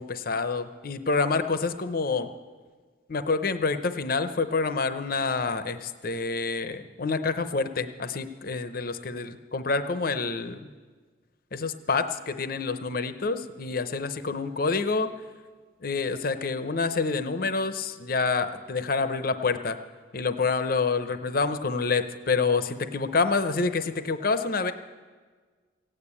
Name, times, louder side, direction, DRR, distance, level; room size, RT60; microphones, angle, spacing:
voice 1, 0.0-2.3 3.1-10.7 11.5-15.1 15.8-19.8 20.1-24.7, left 4 dB, 50° left, 10 dB, 0.7 m, -27 dB
16.0 x 8.9 x 8.5 m, 1.5 s
head